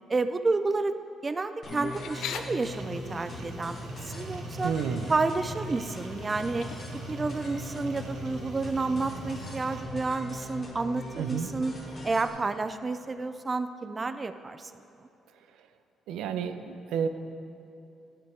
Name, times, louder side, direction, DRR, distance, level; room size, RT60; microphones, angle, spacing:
voice 1, 0.1-1.0 1.2-4.7 5.1-6.7 7.1-11.7 12.0-14.7, right 3 dB, 30° right, 10 dB, 0.3 m, -30 dB
sound 1, 1.6-12.3, left 1 dB, 45° left, 1.7 m, -41 dB
sound 2, 1.9-2.4 4.2-4.3 4.7-5.1 6.2-7.1, left 8 dB, 80° left, 0.5 m, -39 dB
sound 3, 2.7-9.8, right 1 dB, 70° right, 1.1 m, -42 dB
voice 2, 4.6-5.0 11.2-11.5 16.1-17.1, right 7 dB, 90° right, 9 dB, 0.5 m, -30 dB
12.0 x 5.1 x 4.5 m, 2.9 s
cardioid pair, 90°, 0 cm